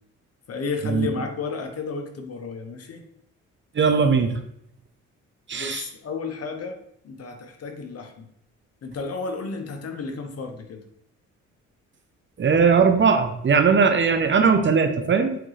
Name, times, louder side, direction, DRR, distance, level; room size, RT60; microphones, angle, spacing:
voice 1, 0.5-3.0 5.6-6.8 7.0-8.3 8.8-10.8, left 4 dB, 55° left, 5 dB, 1.1 m, -32 dB
voice 2, 3.7-4.4 5.5-5.8 12.4-15.4, right 5 dB, 40° right, 7 dB, 0.8 m, -19 dB
7.9 x 3.7 x 3.3 m, 0.72 s
cardioid pair, 90°, 30 cm